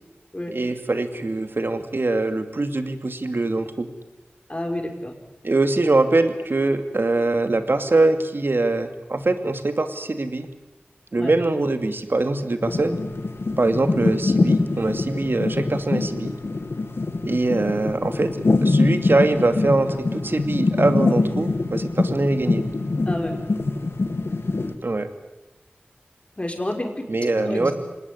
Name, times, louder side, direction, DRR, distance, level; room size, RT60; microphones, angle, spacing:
voice 1, 0.5-3.9 5.4-10.5 11.1-13.0 13.6-16.4 17.2-18.3 18.6-22.6 24.8-25.1 27.1-27.7, right 2 dB, 60° right, 8 dB, 2.5 m, -23 dB
voice 2, 4.5-5.1 11.2-11.3 23.1-23.4 26.4-26.9 27.4-27.7, left 1 dB, 30° left, 3 dB, 5.4 m, -29 dB
sound 1, 12.6-24.7, left 3 dB, 80° left, 2.0 m, -24 dB
26.5 x 19.5 x 9.9 m, 1.0 s
wide cardioid pair, 50°, 4 cm